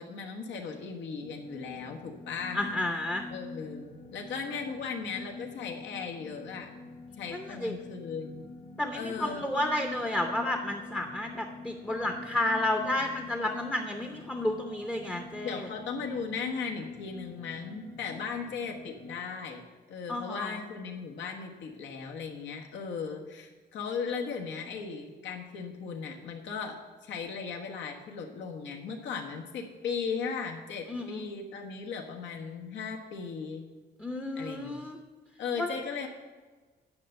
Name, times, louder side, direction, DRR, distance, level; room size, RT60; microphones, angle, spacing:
voice 1, 0.0-2.6 3.3-6.7 7.2-8.4 8.9-9.4 15.4-19.6 19.9-33.7 34.3-34.8 35.4-36.1, left 5 dB, 85° left, 1 dB, 1.4 m, -37 dB
sound 1, 1.2-19.2, left 3 dB, 45° left, 1.3 m, -46 dB
voice 2, 2.5-3.3 7.3-7.8 8.8-15.7 20.1-20.6 30.9-31.2 34.0-35.0 35.6-35.7, left 1 dB, 5° left, 4 dB, 0.7 m, -31 dB
9.6 x 5.6 x 7.8 m, 1.3 s
cardioid pair, 165°, 18 cm